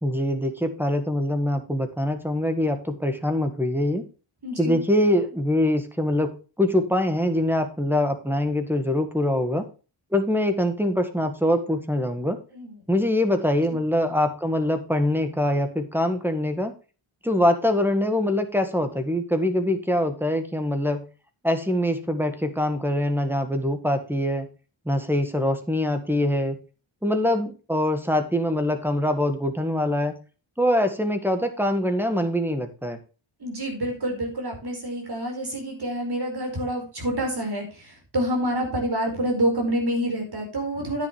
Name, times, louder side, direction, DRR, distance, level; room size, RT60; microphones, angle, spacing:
voice 1, 0.0-4.0 4.6-6.3 6.6-9.6 10.1-12.4 12.9-16.7 17.2-21.0 21.4-24.5 24.8-26.6 27.0-30.1 30.6-33.0, left 1 dB, 5° right, 7 dB, 1.7 m, -24 dB
voice 2, 4.4-4.8 12.5-12.8 33.4-41.1, right 1 dB, 50° right, 3 dB, 4.9 m, -27 dB
10.0 x 9.8 x 3.3 m, 0.34 s
wide cardioid pair, 100°, 49 cm